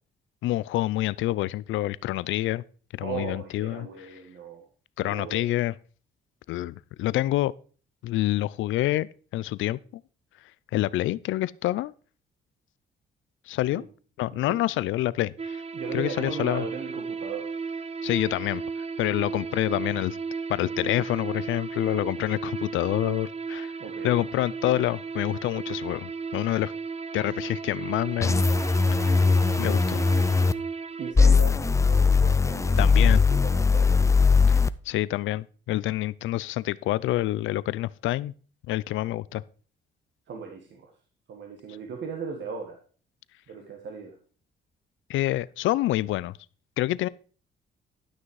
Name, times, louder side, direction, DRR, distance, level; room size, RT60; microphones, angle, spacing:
voice 1, 0.4-2.6 3.0-3.9 5.0-5.7 6.5-7.5 8.0-9.8 10.7-11.9 13.5-13.8 14.2-15.6 15.9-16.6 18.0-18.6 19.0-20.2 20.5-23.7 24.0-26.7 27.1-28.4 29.0-29.2 29.6-30.0 32.8-33.2 34.5-38.3 38.7-39.4 45.1-46.4 46.8-47.1, left 15 dB, 80° left, 0.5 m, -27 dB
voice 2, 3.0-4.7 5.0-5.5 13.7-13.9 14.3-14.6 15.7-17.5 23.8-24.2 31.0-33.0 33.3-34.0 40.3-40.9 41.3-42.8 43.5-44.2, right 5 dB, 65° right, 1.8 m, -37 dB
sound 1, 15.4-31.1, right 5 dB, 30° right, 0.7 m, -34 dB
sound 2, 28.2-30.5 31.2-34.7, left 4 dB, 15° left, 0.4 m, -20 dB
12.0 x 6.2 x 4.7 m
cardioid pair, 90°, 20 cm